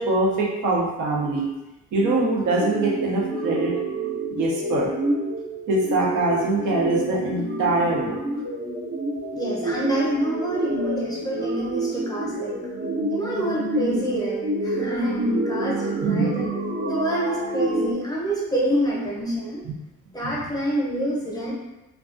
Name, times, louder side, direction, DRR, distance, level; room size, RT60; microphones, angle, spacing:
voice 1, 0.0-1.5 1.9-3.7 4.3-4.9 5.7-8.2 16.0-16.5, right 2 dB, 75° right, -2 dB, 0.6 m, -23 dB
sound 1, 1.9-17.9, right 1 dB, 35° right, 0.6 m, -28 dB
voice 2, 9.3-12.5 13.1-16.5 16.8-19.6 20.1-21.5, equal, 10° left, -5 dB, 0.7 m, -27 dB
2.3 x 2.2 x 2.4 m, 1.0 s
cardioid pair, 90°, 30 cm